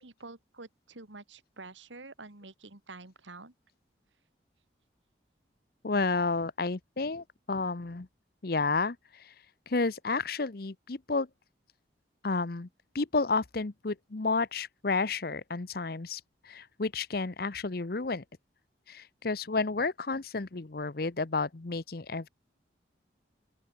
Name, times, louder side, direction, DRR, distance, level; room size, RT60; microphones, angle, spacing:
voice 1, 0.0-3.5, right 3 dB, 90° right, 2.5 m, -48 dB
voice 2, 5.8-8.1 8.4-9.3 9.7-11.3 12.2-12.7 12.9-18.2 18.9-22.3, left 3 dB, 55° left, 0.8 m, -31 dB
open air
head